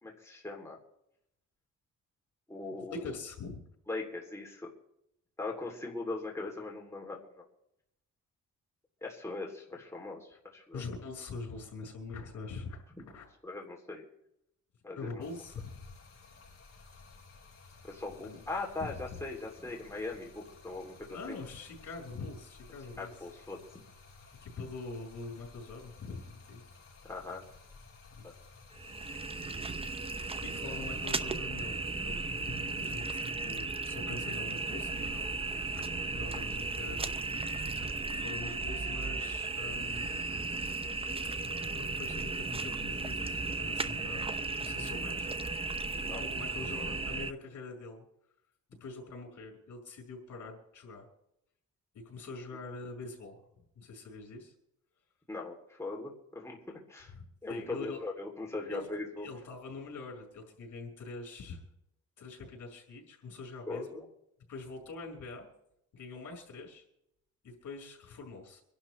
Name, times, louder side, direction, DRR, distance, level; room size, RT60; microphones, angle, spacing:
voice 1, 0.0-0.8 2.5-3.1 3.9-4.7 5.4-7.4 9.0-10.8 13.4-14.0 14.8-15.2 17.8-21.0 21.3-21.4 23.0-23.8 27.0-27.4 28.2-28.3 38.4-38.5 45.9-46.3 55.3-57.1 57.4-59.3 63.7-64.0, left 3 dB, 10° left, -2 dB, 3.0 m, -40 dB
voice 2, 2.8-3.6 10.7-13.3 14.9-16.0 18.2-18.4 18.8-19.2 21.1-23.1 24.4-26.6 28.2-28.3 29.1-29.2 30.4-37.4 37.8-40.1 41.7-44.3 44.6-45.3 45.6-48.1 48.8-51.1 51.9-53.4 53.7-54.5 57.1-58.0 58.6-58.9 59.2-61.6 62.2-64.0 64.5-65.5 65.9-66.8 67.4-68.6, left 3 dB, 70° left, 1 dB, 5.2 m, -44 dB
Stream, 15.2-31.2, left 4 dB, 45° left, 4.6 m, -55 dB
sound 1, 28.7-47.3, right 3 dB, 20° right, 0.6 m, -35 dB
25.5 x 11.5 x 3.3 m, 0.79 s
cardioid pair, 110°, 31 cm